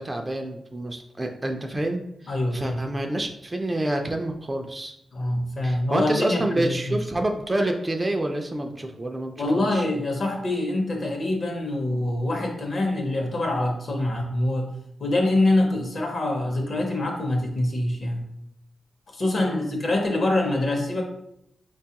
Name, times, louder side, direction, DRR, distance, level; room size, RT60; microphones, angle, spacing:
voice 1, 0.0-2.0 2.5-4.9 5.6-9.8 19.4-19.7, right 1 dB, 20° right, 4 dB, 0.3 m, -28 dB
voice 2, 2.3-2.8 5.1-7.0 9.4-14.7 15.0-18.2 19.1-21.0, left 1 dB, 45° left, 2 dB, 0.7 m, -25 dB
4.4 x 2.3 x 2.8 m, 0.77 s
wide cardioid pair, 115°, 0 cm